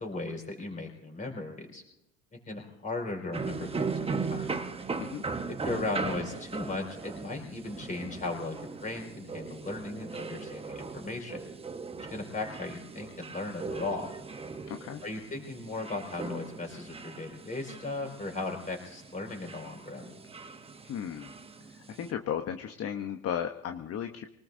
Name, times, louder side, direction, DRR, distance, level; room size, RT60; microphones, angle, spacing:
voice 1, 0.0-1.8 2.3-4.5 5.5-11.4 12.0-14.1 15.0-20.1, left 2 dB, 20° left, 2 dB, 4.9 m, -37 dB
sound 1, 3.3-22.1, right 4 dB, 15° right, 1.0 m, -39 dB
voice 2, 14.7-15.0 20.8-21.3 22.0-24.3, left 9 dB, 40° left, 6 dB, 1.0 m, -35 dB
24.5 x 19.0 x 2.7 m, 0.87 s
supercardioid pair, 100°, 38 cm